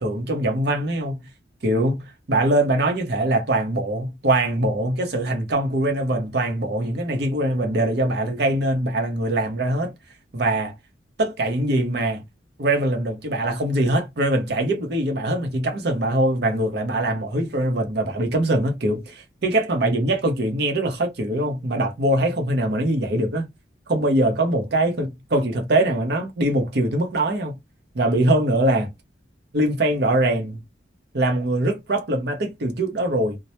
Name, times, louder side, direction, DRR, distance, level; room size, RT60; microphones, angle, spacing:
voice 1, 0.0-1.1 1.6-2.0 2.3-9.9 10.3-10.7 11.2-12.2 12.6-23.5 23.9-27.5 27.9-28.9 29.5-30.6 31.1-33.4, right 1 dB, 60° right, 0.7 m, -22 dB
2.1 x 2.1 x 2.8 m
head